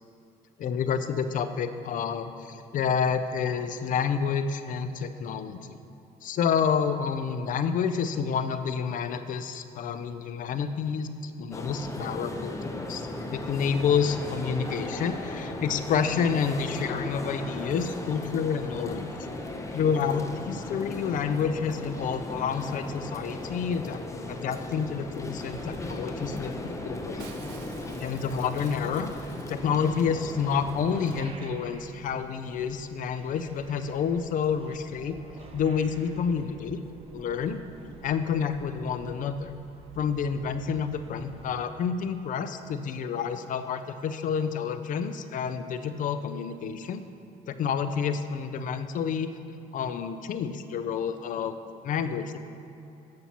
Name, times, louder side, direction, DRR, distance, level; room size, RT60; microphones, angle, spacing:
voice 1, 0.6-5.8 6.2-11.1 11.4-13.0 13.3-19.1 19.7-24.0 24.3-27.3 28.0-29.1 29.5-35.2 35.5-36.8 37.1-37.6 38.0-39.5 40.0-47.0 47.5-49.3 49.7-51.6 51.8-52.4, left 6 dB, 50° left, 10 dB, 0.4 m, -29 dB
sound 1, 11.5-31.2, left 2 dB, 15° left, 0.7 m, -37 dB
sound 2, 25.5-41.6, right 3 dB, 35° right, 0.8 m, -49 dB
Shatter, 27.2-29.9 30.2-30.3 30.5-30.9 31.2-31.3, right 7 dB, 85° right, 0.7 m, -51 dB
14.0 x 5.7 x 2.9 m, 2.8 s
cardioid pair, 110°, 17 cm